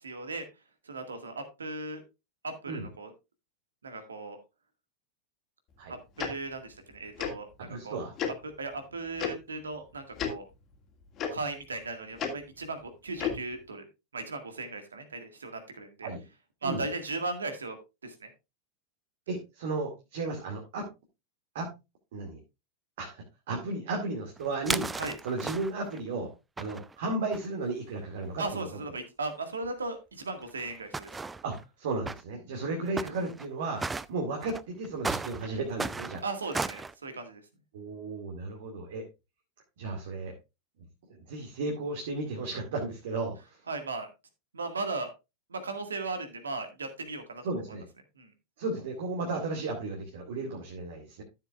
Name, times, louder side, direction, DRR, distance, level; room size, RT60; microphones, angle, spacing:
voice 1, 0.0-0.5 0.8-2.0 2.4-3.1 3.8-4.4 5.9-8.0 8.4-10.5 11.3-13.8 14.1-16.1 16.6-17.8 18.0-18.3 25.0-25.2 28.4-31.2 36.2-37.4 43.7-44.1 44.5-45.1 45.5-47.4 48.2-48.3, right 3 dB, 70° right, 7 dB, 1.9 m, -37 dB
Tick-tock, 6.2-6.3 7.2-7.3 8.2-8.3 9.2-9.3 10.2-10.3 11.2-11.3 12.2-12.3 13.2-13.4, left 8 dB, 30° left, 2.2 m, -31 dB
voice 2, 7.6-8.1 16.0-16.2 16.6-16.8 19.3-20.9 21.5-21.7 22.1-22.4 23.0-24.9 25.2-26.3 26.6-28.7 31.4-33.8 34.1-36.2 37.7-39.1 39.8-40.4 41.3-43.3 47.4-47.8 48.6-51.2, right 3 dB, 55° right, 0 dB, 2.2 m, -34 dB
sound 1, 24.4-26.0 26.6-27.5 28.2-28.3 28.5-28.6 29.6-29.7 30.4-31.6 32.1-32.2 33.0-33.5 33.7-34.1 34.4-36.9, right 3 dB, 10° right, 0.4 m, -35 dB
13.5 x 7.6 x 2.4 m, 0.25 s
figure-of-eight pair, 90°, 0 cm